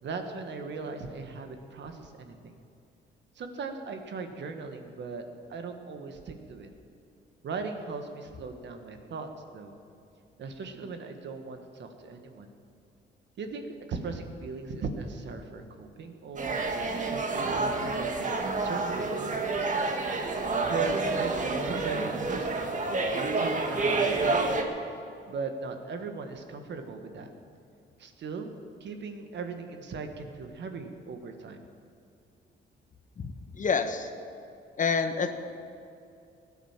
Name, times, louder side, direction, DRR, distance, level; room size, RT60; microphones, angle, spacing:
voice 1, 0.0-2.6 3.3-5.2 5.5-6.7 7.4-9.8 10.4-12.5 13.4-16.6 17.1-19.9 20.6-22.5 23.1-24.7 25.3-27.3 28.0-28.5 28.8-31.6, right 4 dB, 65° right, 6 dB, 1.7 m, -38 dB
sound 1, 16.4-24.6, right 3 dB, 40° right, 1.8 m, -29 dB
voice 2, 33.2-34.1 34.8-35.3, left 5 dB, 40° left, 8 dB, 1.3 m, -28 dB
16.5 x 10.0 x 7.5 m, 2.6 s
cardioid pair, 90°, 20 cm